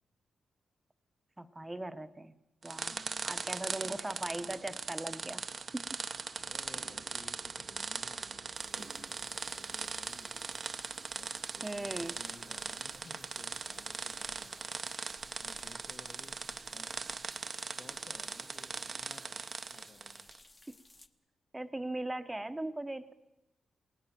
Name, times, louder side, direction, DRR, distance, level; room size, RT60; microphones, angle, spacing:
voice 1, 1.4-2.3 2.6-2.9 3.2-5.4 5.7-5.9 11.6-12.1 21.5-23.1, right 1 dB, 10° right, 10 dB, 0.9 m, -39 dB
sound 1, 2.6-20.4, right 5 dB, 40° right, 0.8 m, -40 dB
voice 2, 2.9-3.3 6.4-10.3 11.1-17.0 17.7-20.3, left 4 dB, 50° left, 2 dB, 1.5 m, -57 dB
Bus, 6.4-14.5, right 6 dB, 85° right, 1.8 m, -62 dB
sound 2, 8.5-21.1, left 2 dB, 20° left, 1.1 m, -59 dB
27.5 x 19.0 x 6.0 m, 0.96 s
wide cardioid pair, 120°, 0 cm